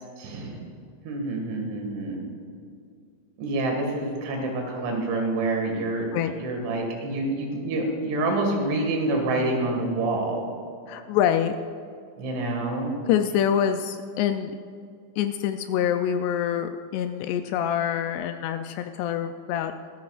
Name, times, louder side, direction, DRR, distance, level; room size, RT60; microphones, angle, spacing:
voice 1, 0.2-0.6 1.1-2.2 3.4-6.1 6.4-10.4 12.2-12.9, right 2 dB, 80° right, 1 dB, 4.4 m, -27 dB
voice 2, 10.9-11.5 13.1-14.6 15.2-19.7, left 9 dB, 90° left, 7 dB, 2.3 m, -25 dB
23.5 x 13.5 x 2.5 m, 2.3 s
omnidirectional pair, 5.3 m